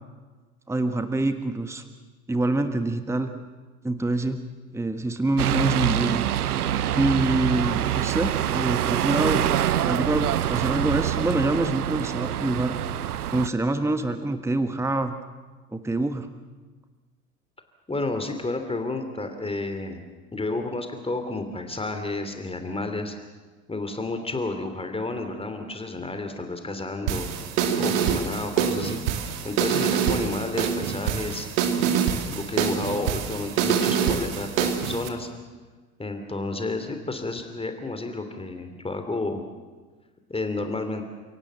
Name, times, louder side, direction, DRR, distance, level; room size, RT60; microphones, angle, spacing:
voice 1, 0.7-1.8 2.3-3.3 3.8-4.4 4.7-6.2 7.0-9.5 9.8-12.8 13.3-15.1 15.7-16.3, right 2 dB, 5° right, 8 dB, 1.4 m, -26 dB
sound 1, 5.4-13.5, right 11 dB, 80° right, 0.8 m, -25 dB
voice 2, 17.9-20.0 20.3-23.1 23.7-27.3 27.8-31.5 32.2-35.3 36.0-39.4 40.3-41.0, left 2 dB, 15° left, 6 dB, 3.0 m, -31 dB
sound 2, 27.1-35.1, right 7 dB, 60° right, 2.6 m, -25 dB
29.5 x 18.0 x 7.6 m, 1.4 s
figure-of-eight pair, 75°, 44 cm